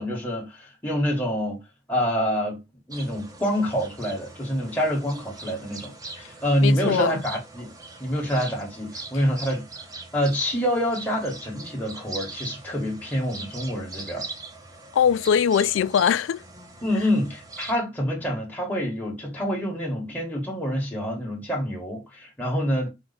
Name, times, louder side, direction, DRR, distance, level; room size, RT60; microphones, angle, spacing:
voice 1, 0.0-1.6 1.9-2.6 2.9-7.7 8.0-9.6 10.1-14.3 16.8-22.9, equal, 10° left, 1.3 m, -26 dB
sound 1, 2.9-17.7, right 3 dB, 20° right, 0.8 m, -41 dB
voice 2, 6.6-7.2 14.9-16.4, left 8 dB, 80° left, 0.3 m, -21 dB
4.5 x 2.4 x 4.0 m
head